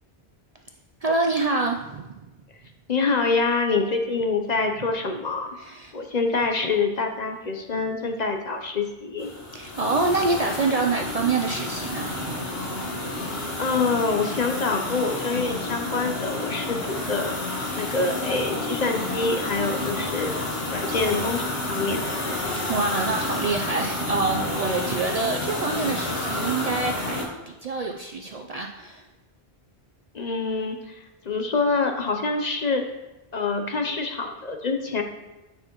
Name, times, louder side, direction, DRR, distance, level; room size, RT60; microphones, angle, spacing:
voice 1, 1.0-2.1 5.6-5.9 9.5-12.4 22.7-27.3 27.6-29.0, right 3 dB, 50° right, 3 dB, 0.4 m, -26 dB
voice 2, 2.9-5.5 5.9-9.3 13.6-20.3 20.7-22.0 30.1-30.9 31.2-32.9 33.3-35.0, left 4 dB, 45° left, 4 dB, 0.7 m, -26 dB
sound 1, 9.2-27.3, left 2 dB, 70° left, 1.7 m, -30 dB
9.0 x 5.7 x 2.9 m, 1.0 s
omnidirectional pair, 1.0 m